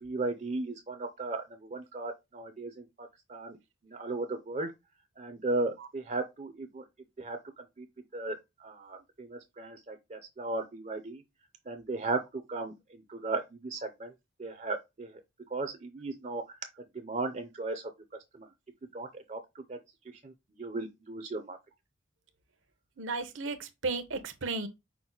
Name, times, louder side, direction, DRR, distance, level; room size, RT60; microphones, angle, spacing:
voice 1, 0.0-3.6 3.8-4.7 5.2-6.8 7.2-7.4 7.8-7.9 8.1-11.2 11.7-14.1 14.4-15.2 15.5-16.6 16.9-17.9 18.3-18.5 18.9-19.8 20.2-20.3 20.6-21.6, right 3 dB, 35° right, 0.5 m, -36 dB
voice 2, 23.0-24.7, right 3 dB, 80° right, 0.8 m, -34 dB
5.9 x 2.1 x 3.8 m
head